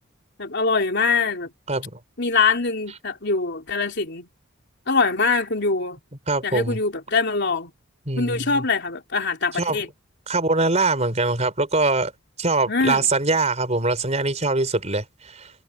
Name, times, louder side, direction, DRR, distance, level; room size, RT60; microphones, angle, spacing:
voice 1, 0.4-1.5 2.2-4.3 4.9-6.0 6.4-7.7 8.2-9.9 12.7-13.1, left 4 dB, 55° left, 3.5 m, -23 dB
voice 2, 1.7-2.0 6.3-6.8 8.1-8.6 9.5-9.8 10.3-12.1 12.4-15.5, right 3 dB, 35° right, 4.3 m, -23 dB
head